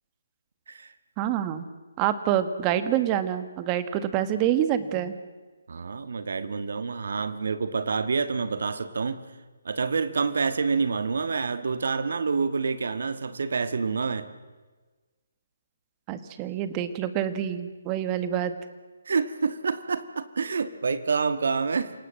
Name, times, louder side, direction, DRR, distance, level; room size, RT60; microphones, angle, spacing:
voice 1, 1.2-1.6 2.0-5.2 16.1-18.5, right 10 dB, 25° right, 11 dB, 1.6 m, -26 dB
voice 2, 5.7-9.2 9.6-14.3 19.0-21.9, right 5 dB, 65° right, 12 dB, 1.4 m, -27 dB
27.5 x 18.0 x 7.5 m, 1.3 s
figure-of-eight pair, 145°, 0 cm